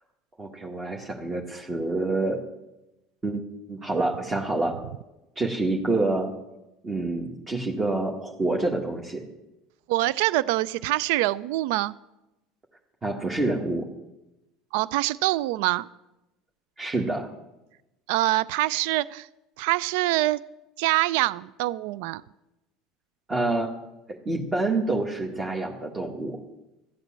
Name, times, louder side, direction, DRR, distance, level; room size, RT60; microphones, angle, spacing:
voice 1, 0.4-2.4 3.2-4.8 5.4-6.3 6.8-9.2 13.0-13.9 16.8-17.3 23.3-23.7 24.3-26.4, right 2 dB, 25° right, 0 dB, 1.8 m, -27 dB
voice 2, 9.9-11.9 14.7-15.9 18.1-19.3 19.6-20.4 20.8-22.2, right 17 dB, 70° right, 20 dB, 0.3 m, -25 dB
13.0 x 8.0 x 7.4 m, 0.95 s
hypercardioid pair, 80°, 0 cm